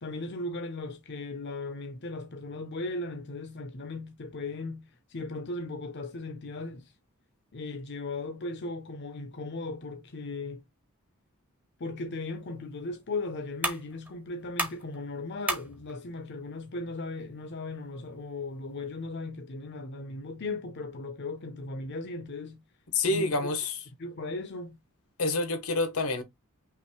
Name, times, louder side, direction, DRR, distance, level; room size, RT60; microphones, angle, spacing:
voice 1, 0.0-6.9 7.5-10.6 11.8-22.6 23.1-23.4 24.0-24.8, left 2 dB, 50° left, 0.7 m, -37 dB
sound 1, 12.1-19.1, right 1 dB, 5° right, 0.8 m, -39 dB
voice 2, 22.9-23.8 25.2-26.2, left 3 dB, 85° left, 1.3 m, -27 dB
5.7 x 2.6 x 3.1 m
head